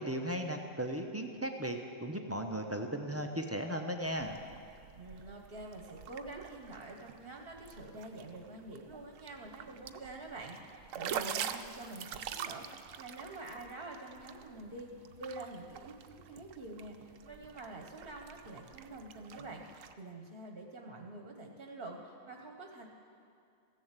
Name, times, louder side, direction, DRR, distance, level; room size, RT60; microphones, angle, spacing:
voice 1, 0.0-4.4, equal, 15° right, 3 dB, 0.5 m, -36 dB
sound 1, 4.0-19.9, right 8 dB, 80° right, 1.0 m, -46 dB
voice 2, 4.9-14.9 15.2-22.9, right 2 dB, 50° right, 2 dB, 1.2 m, -47 dB
15.0 x 7.2 x 8.1 m, 2.5 s
omnidirectional pair, 1.3 m